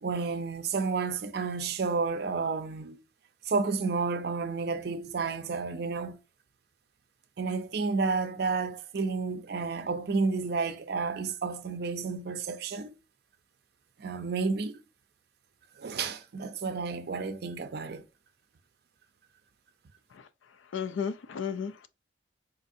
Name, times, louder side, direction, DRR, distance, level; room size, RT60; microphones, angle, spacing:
voice 1, 0.0-3.0 3.4-6.2 7.4-12.9 14.0-14.8 15.8-18.0, right 4 dB, 55° right, 0.5 m, -31 dB
voice 2, 20.7-21.9, left 6 dB, 85° left, 0.4 m, -33 dB
4.0 x 2.6 x 2.5 m
head